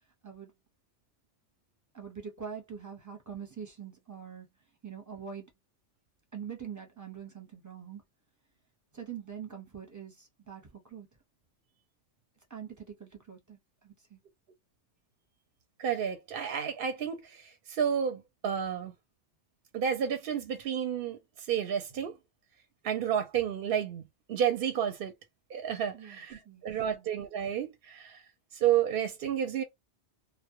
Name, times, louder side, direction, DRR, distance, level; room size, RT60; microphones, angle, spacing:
voice 1, 1.9-4.5 4.8-5.5 6.3-8.0 8.9-11.1 12.5-14.2 25.9-27.1, right 7 dB, 20° right, 0.6 m, -44 dB
voice 2, 15.8-18.9 19.7-21.2 21.5-22.2 22.8-24.0 24.3-25.1 25.5-28.2 28.5-29.6, right 9 dB, 60° right, 0.7 m, -31 dB
2.2 x 2.0 x 2.8 m
omnidirectional pair, 1.2 m